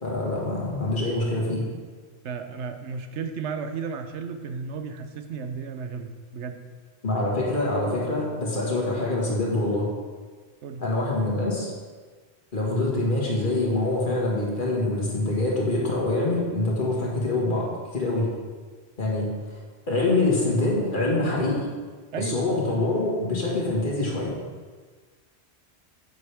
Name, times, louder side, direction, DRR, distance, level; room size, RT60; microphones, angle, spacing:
voice 1, 0.0-1.6 7.0-9.9 10.8-11.7 12.5-18.3 19.0-19.6 19.9-21.7 22.2-24.4, left 2 dB, 45° left, -4 dB, 2.1 m, -25 dB
voice 2, 2.2-6.6 10.6-10.8 22.1-22.4, right 5 dB, 90° right, 7 dB, 1.0 m, -33 dB
9.6 x 7.9 x 3.5 m, 1.5 s
omnidirectional pair, 1.1 m